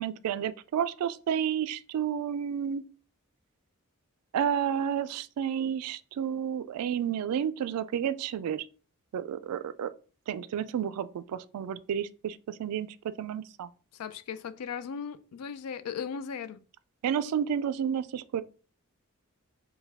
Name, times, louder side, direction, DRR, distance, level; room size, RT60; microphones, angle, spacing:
voice 1, 0.0-2.8 4.3-8.7 9.1-9.9 10.3-13.7 17.0-18.4, right 8 dB, 90° right, 0.3 m, -31 dB
voice 2, 14.0-16.6, left 7 dB, 90° left, 0.4 m, -37 dB
4.5 x 2.2 x 3.4 m
head